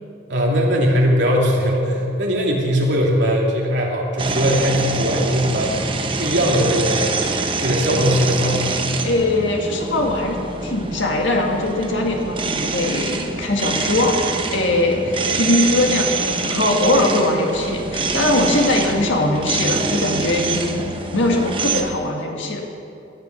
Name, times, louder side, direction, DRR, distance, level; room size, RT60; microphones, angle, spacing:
voice 1, 0.3-7.1 7.6-8.7, equal, 70° right, -2 dB, 2.9 m, -19 dB
sound 1, 4.2-21.8, right 3 dB, 25° right, 1.0 m, -25 dB
voice 2, 9.0-14.2 14.5-20.9 21.1-22.6, left 2 dB, 90° left, 1 dB, 1.8 m, -21 dB
17.5 x 10.5 x 6.1 m, 2.6 s
head